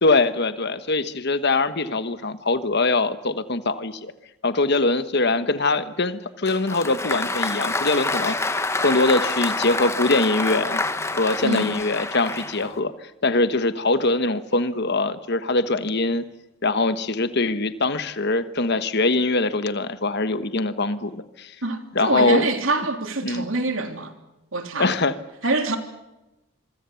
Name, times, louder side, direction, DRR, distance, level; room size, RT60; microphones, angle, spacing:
voice 1, 0.0-4.1 4.4-10.8 11.1-16.2 16.6-21.5 21.9-22.5 23.2-23.4 24.8-25.1, left 2 dB, 50° left, 1.3 m, -23 dB
Applause, 6.5-12.8, left 2 dB, 10° left, 1.1 m, -27 dB
voice 2, 21.6-24.1 24.5-24.9 25.4-25.8, right 2 dB, 65° right, 3.1 m, -25 dB
25.5 x 24.0 x 7.1 m
head